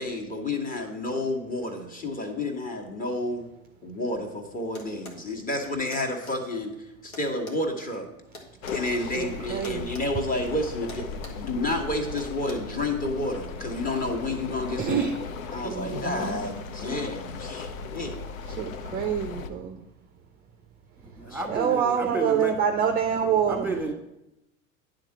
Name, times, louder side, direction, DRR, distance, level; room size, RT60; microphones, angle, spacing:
voice 1, 0.0-3.4 3.8-6.7 7.0-8.1 8.7-15.1 15.5-18.1 21.2-21.4 21.8-21.9, left 2 dB, 20° left, 2 dB, 1.3 m, -30 dB
sound 1, 4.7-5.2 5.9-6.4 7.1-8.8 9.6-10.1 10.4-10.5 10.9-11.5 12.2-12.5, left 2 dB, 90° left, 1.5 m, -44 dB
sound 2, 8.6-19.5, left 5 dB, 70° left, 0.8 m, -37 dB
voice 2, 9.1-9.9 14.8-15.2 15.6-16.4 18.5-19.8 21.5-23.7, right 7 dB, 20° right, 5 dB, 0.5 m, -26 dB
voice 3, 21.2-22.5 23.5-23.9, right 2 dB, 5° right, 3 dB, 1.4 m, -31 dB
9.7 x 3.8 x 5.9 m, 0.88 s
hypercardioid pair, 85°, 42 cm